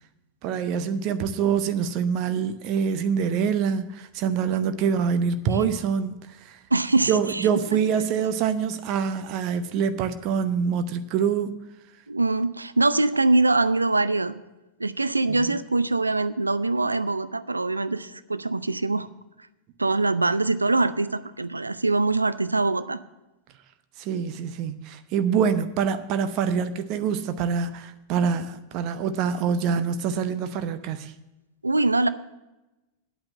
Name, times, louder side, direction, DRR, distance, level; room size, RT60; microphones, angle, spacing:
voice 1, 0.4-6.6 7.1-11.5 15.3-15.5 24.0-31.1, right 7 dB, 40° right, 0.8 m, -25 dB
voice 2, 6.7-7.5 12.1-14.4 14.8-19.1 19.8-23.0 31.6-32.1, right 2 dB, 80° right, 0.6 m, -23 dB
9.7 x 8.8 x 7.3 m
figure-of-eight pair, 90°, 0 cm